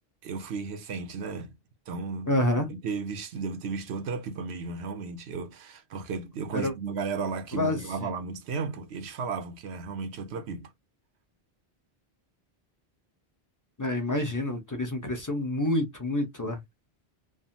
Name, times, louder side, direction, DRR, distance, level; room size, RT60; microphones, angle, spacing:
voice 1, 0.2-1.5 1.9-2.3 2.6-10.7, right 4 dB, 85° right, 0.9 m, -34 dB
voice 2, 2.3-2.7 6.5-6.7 7.5-8.1 13.8-16.6, left 1 dB, 20° left, 0.7 m, -28 dB
3.4 x 2.1 x 2.6 m
omnidirectional pair, 1.1 m